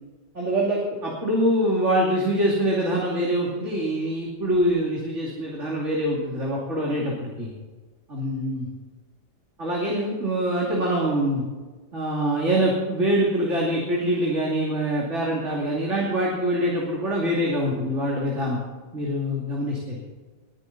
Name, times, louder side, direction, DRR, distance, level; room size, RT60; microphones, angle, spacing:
voice 1, 0.3-7.5 8.1-8.7 9.6-11.4 11.9-18.6 18.9-20.0, equal, 45° right, -3 dB, 3.1 m, -24 dB
21.5 x 10.0 x 4.2 m, 1.3 s
omnidirectional pair, 1.8 m